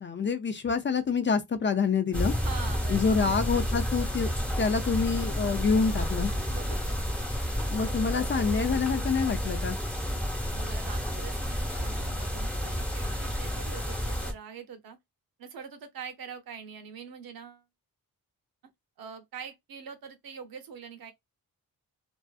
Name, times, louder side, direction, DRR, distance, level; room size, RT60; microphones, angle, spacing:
voice 1, 0.0-2.3 2.9-4.3 4.6-6.3 7.7-9.8, left 5 dB, 35° left, 0.4 m, -27 dB
sound 1, 2.1-14.3, equal, 5° left, 1.0 m, -30 dB
voice 2, 2.4-3.4 6.3-7.1 10.5-15.0 15.4-17.6 19.0-21.1, right 6 dB, 70° right, 0.7 m, -44 dB
2.5 x 2.4 x 2.3 m
cardioid pair, 100°, 36 cm